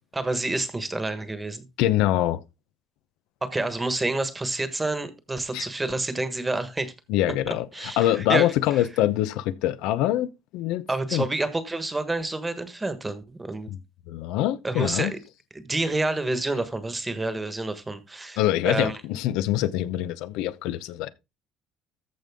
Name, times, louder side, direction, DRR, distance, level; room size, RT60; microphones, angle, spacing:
voice 1, 0.1-1.7 3.4-6.9 7.5-8.9 10.9-13.7 14.6-15.2 15.5-19.0, right 2 dB, 10° right, 1.4 m, -29 dB
voice 2, 1.8-2.4 5.5-5.6 7.1-10.8 11.1-11.2 14.1-15.1 18.4-21.1, left 13 dB, 80° left, 0.7 m, -24 dB
14.0 x 5.3 x 3.6 m
cardioid pair, 150°, 0 cm